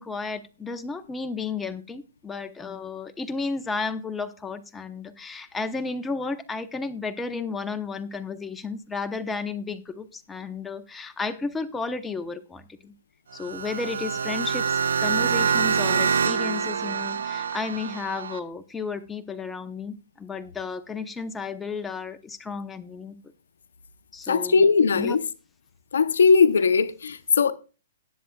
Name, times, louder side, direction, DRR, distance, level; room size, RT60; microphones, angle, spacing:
voice 1, 0.0-12.9 13.3-23.2 24.1-24.7 24.9-25.2, left 4 dB, 10° left, 0.8 m, -33 dB
sound 1, 13.3-18.4, right 6 dB, 80° right, 0.6 m, -25 dB
voice 2, 24.3-25.2 25.9-27.5, left 5 dB, 80° left, 0.7 m, -19 dB
18.5 x 7.7 x 2.3 m
hypercardioid pair, 130°, 0 cm